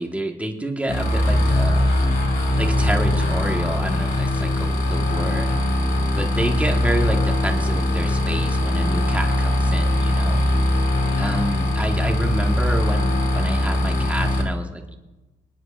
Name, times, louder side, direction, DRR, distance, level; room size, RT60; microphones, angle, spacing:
voice 1, 0.0-1.9 2.5-5.5 6.1-10.4 11.1-15.0, right 1 dB, 5° right, 3 dB, 1.5 m, -28 dB
sound 1, 0.9-14.4, left 1 dB, 70° left, 2.9 m, -21 dB
27.5 x 9.4 x 2.5 m, 1.1 s
cardioid pair, 90°, 20 cm